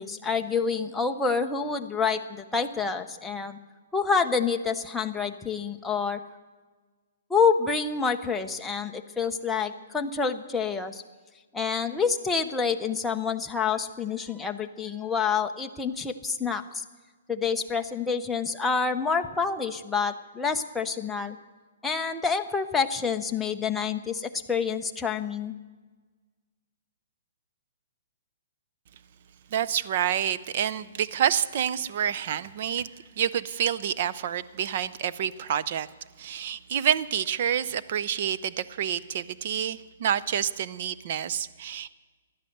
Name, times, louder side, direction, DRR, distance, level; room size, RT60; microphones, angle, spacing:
voice 1, 0.0-3.6 3.9-6.2 7.3-11.0 11.5-16.8 17.3-21.4 21.8-25.5, left 5 dB, 5° left, 4 dB, 0.6 m, -27 dB
voice 2, 29.5-32.9 33.2-35.9 36.2-41.9, right 9 dB, 40° right, 15 dB, 0.5 m, -28 dB
16.0 x 11.0 x 7.8 m, 1.4 s
hypercardioid pair, 170°, 0 cm